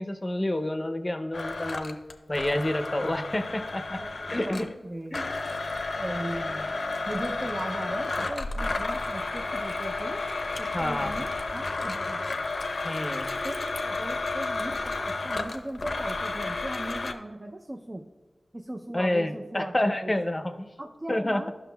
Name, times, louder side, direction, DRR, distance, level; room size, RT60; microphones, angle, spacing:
voice 1, 0.0-2.0 2.3-4.0 4.3-4.7 5.1-5.3 10.7-11.1 12.8-13.3 18.9-20.7 21.1-21.5, left 1 dB, 25° left, 7 dB, 0.6 m, -29 dB
Domestic sounds home sounds, 1.3-4.7 5.1-17.1, left 3 dB, 75° left, 0.6 m, -32 dB
voice 2, 4.0-5.3 6.0-6.7 7.1-10.2 10.6-12.2 13.4-18.0 18.5-20.1 20.8-21.5, right 1 dB, 30° right, 3 dB, 0.5 m, -38 dB
13.0 x 6.0 x 2.3 m, 1.2 s
wide cardioid pair, 75°, 0 cm